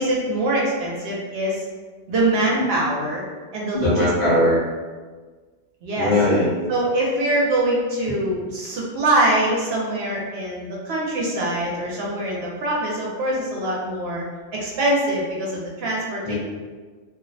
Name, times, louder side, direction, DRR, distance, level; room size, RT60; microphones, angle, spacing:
voice 1, 0.0-1.6 2.1-3.2 3.5-4.1 5.8-6.1 6.7-14.2 14.5-16.3, right 1 dB, 70° right, -3 dB, 0.8 m, -23 dB
voice 2, 3.7-4.6 6.0-6.5 16.2-16.3, left 1 dB, 35° left, -11 dB, 0.7 m, -19 dB
2.4 x 2.0 x 2.6 m, 1.4 s
omnidirectional pair, 1.1 m